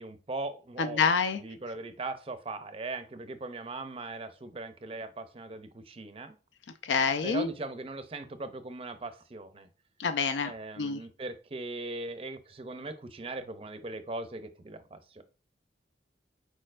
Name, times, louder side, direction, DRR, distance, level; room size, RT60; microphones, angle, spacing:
voice 1, 0.0-1.1 1.4-6.3 7.2-9.7 10.4-15.2, right 2 dB, 30° right, 10 dB, 0.5 m, -39 dB
voice 2, 0.8-1.4 6.8-7.5 10.0-11.0, left 5 dB, 80° left, 10 dB, 0.5 m, -27 dB
4.6 x 4.3 x 2.5 m, 0.35 s
head